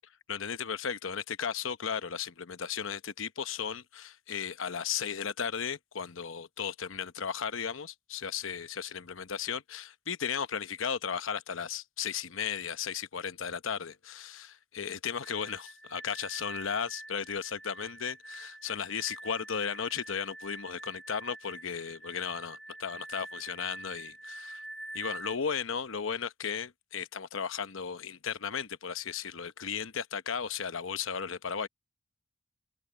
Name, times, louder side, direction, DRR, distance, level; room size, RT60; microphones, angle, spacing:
voice 1, 0.3-24.6 24.9-31.7, left 7 dB, 70° left, 0.9 m, -35 dB
sound 1, 15.2-25.4, right 1 dB, 55° left, 1.4 m, -45 dB
head